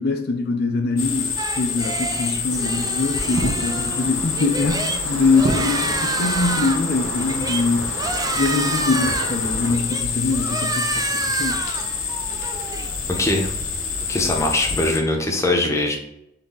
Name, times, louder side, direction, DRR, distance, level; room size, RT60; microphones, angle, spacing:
voice 1, 0.0-7.9 8.3-11.6, left 3 dB, 55° left, 3 dB, 0.5 m, -23 dB
sound 1, 1.0-15.0, left 6 dB, 80° left, 0.9 m, -27 dB
sound 2, 1.4-15.3, right 4 dB, 20° right, 0.3 m, -30 dB
sound 3, 2.5-9.8, right 2 dB, 70° right, 0.6 m, -31 dB
voice 2, 13.2-13.5 14.1-16.0, left 2 dB, 15° left, 1 dB, 0.8 m, -21 dB
4.0 x 3.4 x 3.8 m, 0.81 s
head